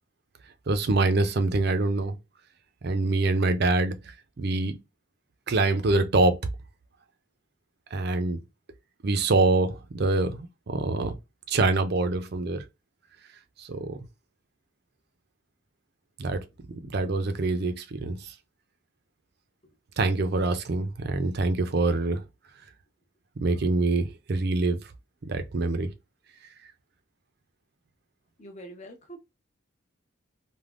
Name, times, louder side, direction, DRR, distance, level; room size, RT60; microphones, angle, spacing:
voice 1, 0.7-2.2 2.8-4.0 4.4-4.8 5.5-6.4 7.9-8.4 9.0-11.1 11.5-12.6 13.6-14.0 16.2-16.4 16.8-18.3 20.0-22.2 23.4-24.8 25.2-25.9, right 3 dB, 50° right, 0.5 m, -25 dB
voice 2, 28.4-29.2, right 1 dB, 35° left, 0.7 m, -45 dB
3.3 x 2.2 x 2.4 m
head